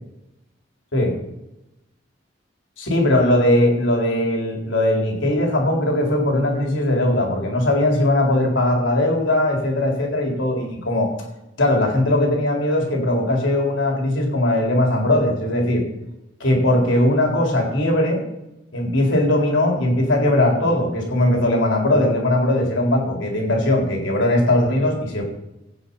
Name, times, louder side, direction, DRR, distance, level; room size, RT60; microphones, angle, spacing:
voice 1, 2.8-11.1 11.6-15.8 16.4-18.2 18.7-25.2, left 1 dB, 75° left, 0 dB, 4.0 m, -19 dB
17.0 x 6.4 x 5.6 m, 0.92 s
head